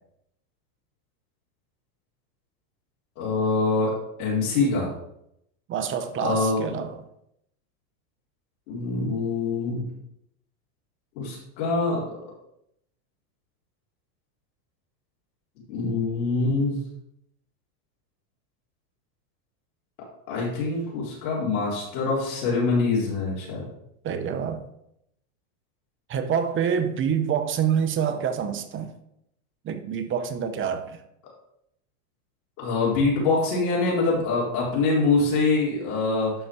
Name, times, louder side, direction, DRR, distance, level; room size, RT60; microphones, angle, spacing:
voice 1, 3.2-3.9 4.2-4.9 6.1-6.8 8.7-9.9 11.2-12.0 15.7-16.8 20.3-23.7 32.6-36.3, left 3 dB, 65° left, 3.9 m, -24 dB
voice 2, 5.7-7.0 24.0-24.6 26.1-28.9 29.6-31.0, right 7 dB, 25° right, 0.9 m, -26 dB
11.5 x 4.3 x 4.7 m
supercardioid pair, 120°, 45 cm